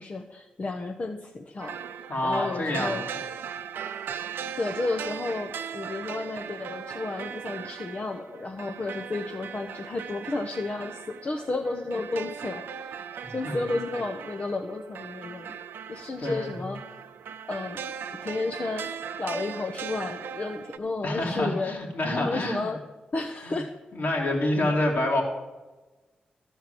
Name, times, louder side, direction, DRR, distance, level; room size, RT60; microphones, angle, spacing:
voice 1, 0.0-3.0 4.6-13.0 13.3-15.6 15.9-16.8 17.5-17.8 18.2-18.9 19.2-21.8 22.1-22.8 23.1-23.7, left 3 dB, 45° left, 3 dB, 0.8 m, -32 dB
sound 1, 1.6-20.8, right 8 dB, 80° right, 0.4 m, -38 dB
voice 2, 2.1-3.0 13.4-13.6 16.2-16.5 21.0-22.6 23.4-23.6 24.0-25.2, left 1 dB, 65° left, -1 dB, 2.5 m, -27 dB
12.5 x 4.5 x 7.7 m, 1.1 s
supercardioid pair, 45°, 4 cm